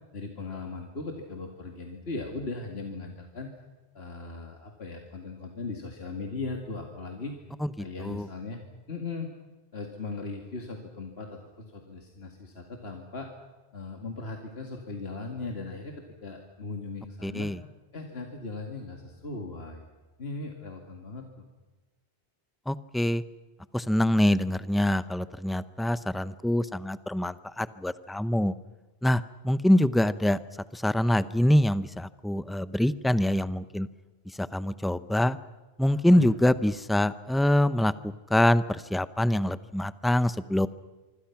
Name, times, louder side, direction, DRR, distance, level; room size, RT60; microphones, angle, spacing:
voice 1, 0.1-3.5 3.9-7.4 7.8-8.6 8.9-9.3 9.7-13.3 13.7-17.5 17.9-19.8 20.2-21.5 35.9-36.3, left 3 dB, 75° left, 2 dB, 2.4 m, -38 dB
voice 2, 7.6-8.3 17.2-17.6 22.7-23.2 23.7-28.5 29.0-30.4 30.7-33.9 34.4-35.4 35.8-40.7, left 1 dB, ahead, 14 dB, 0.5 m, -25 dB
26.0 x 25.0 x 5.9 m, 1.2 s
omnidirectional pair, 1.1 m